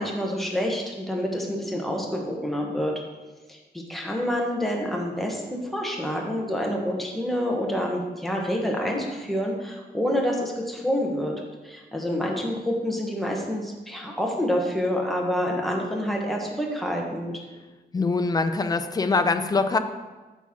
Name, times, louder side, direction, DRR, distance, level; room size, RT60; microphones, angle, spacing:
voice 1, 0.0-2.9 3.5-11.3 11.6-17.3, equal, ahead, -1 dB, 1.1 m, -27 dB
voice 2, 17.9-19.8, left 3 dB, 25° left, 8 dB, 0.4 m, -23 dB
8.2 x 6.1 x 3.7 m, 1.2 s
wide cardioid pair, 155°, 17 cm